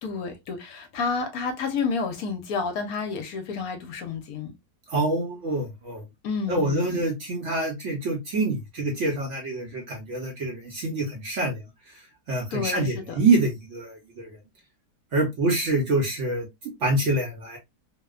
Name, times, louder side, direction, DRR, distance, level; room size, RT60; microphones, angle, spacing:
voice 1, 0.0-4.5 6.2-7.1 12.5-13.2, left 5 dB, 70° left, 1.0 m, -30 dB
voice 2, 4.9-6.0 6.5-11.6 12.3-14.3 15.1-16.5 16.8-17.6, right 2 dB, 55° right, 0.9 m, -26 dB
2.8 x 2.0 x 2.3 m
omnidirectional pair, 1.8 m